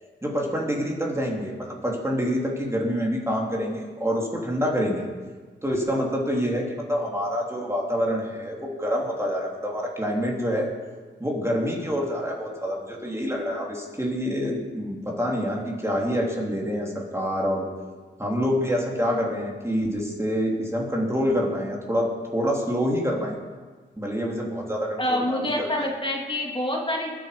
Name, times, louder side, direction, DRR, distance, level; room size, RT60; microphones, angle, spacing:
voice 1, 0.2-5.1 5.6-10.7 11.2-17.7 18.2-23.4 24.0-25.9, equal, 15° right, -2 dB, 3.1 m, -27 dB
voice 2, 25.0-27.1, left 1 dB, 25° left, -1 dB, 2.9 m, -26 dB
21.0 x 8.8 x 5.2 m, 1.4 s
cardioid pair, 60°, 20 cm